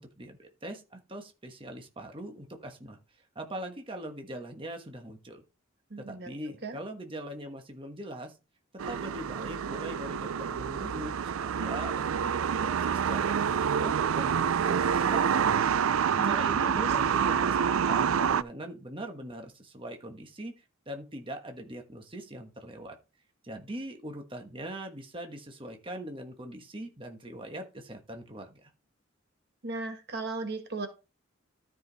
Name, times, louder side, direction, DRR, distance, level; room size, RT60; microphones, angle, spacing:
voice 1, 0.0-3.0 3.3-5.4 6.1-8.3 8.9-15.9 16.2-23.0 23.4-28.7, right 1 dB, 25° right, 4 dB, 1.4 m, -41 dB
voice 2, 5.9-6.3 6.6-6.8 16.2-17.1 29.6-30.9, right 3 dB, 50° right, 6 dB, 1.3 m, -36 dB
sound 1, 8.8-18.4, right 7 dB, 85° right, 0.4 m, -27 dB
13.0 x 5.1 x 4.0 m, 0.30 s
head